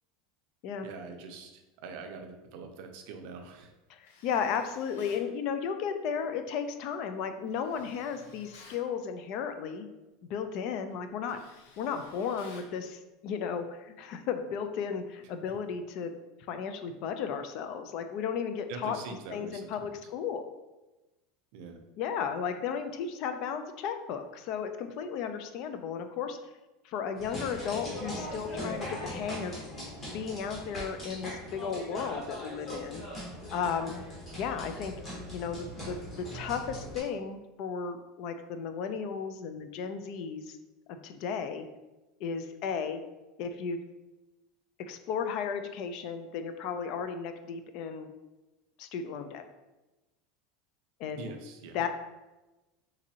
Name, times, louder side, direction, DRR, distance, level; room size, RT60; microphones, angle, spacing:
voice 1, 0.8-3.7 18.7-20.0 21.5-21.8 28.4-28.6 51.1-51.9, right 4 dB, 60° right, 5 dB, 0.5 m, -44 dB
voice 2, 3.9-9.9 10.2-11.4 11.8-16.1 16.5-19.0 19.3-20.5 22.0-26.4 26.8-29.6 30.1-33.0 33.5-34.0 34.3-34.9 35.3-40.6 40.9-41.7 42.2-43.0 43.4-43.8 44.8-48.1 48.8-49.4 51.0-51.3 51.7-51.9, left 6 dB, 50° left, 8 dB, 0.3 m, -34 dB
Tools, 4.0-5.3 7.5-8.9 10.4-10.6 10.9-12.8, left 3 dB, 90° left, 0.6 m, -55 dB
sound 1, 27.2-37.0, equal, 20° left, 1.1 m, -40 dB
3.9 x 2.6 x 2.8 m, 1.1 s
supercardioid pair, 150°, 0 cm